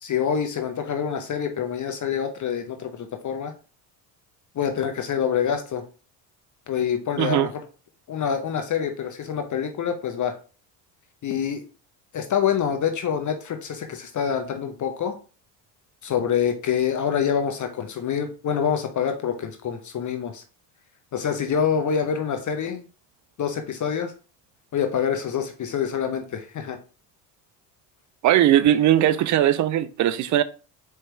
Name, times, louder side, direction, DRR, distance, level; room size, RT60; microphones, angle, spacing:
voice 1, 0.0-3.5 4.5-5.8 6.7-7.6 8.1-10.4 11.2-11.6 12.1-15.2 16.0-20.4 21.1-22.9 23.4-24.1 24.7-26.8, left 8 dB, 40° left, 0.8 m, -26 dB
voice 2, 7.2-7.5 28.2-30.4, right 12 dB, 40° right, 0.4 m, -19 dB
4.5 x 3.3 x 3.1 m
hypercardioid pair, 70°, 48 cm